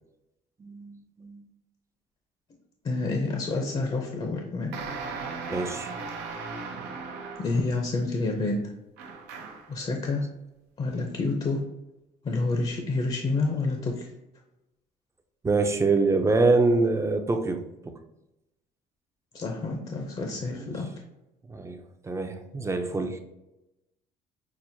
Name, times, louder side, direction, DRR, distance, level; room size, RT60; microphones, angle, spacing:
voice 1, 0.6-1.4 5.5-5.9 15.4-17.6 17.9-18.0 20.5-20.7 21.5-23.2, right 3 dB, 15° right, 6 dB, 0.5 m, -25 dB
voice 2, 2.8-4.7 7.4-8.6 9.7-10.2 10.8-11.6 12.2-14.1 19.3-20.9, left 3 dB, 35° left, 2 dB, 0.6 m, -28 dB
sound 1, 4.7-7.7 9.0-9.8, right 4 dB, 90° right, 0.6 m, -37 dB
6.0 x 2.0 x 2.7 m, 0.93 s
cardioid pair, 110°, 17 cm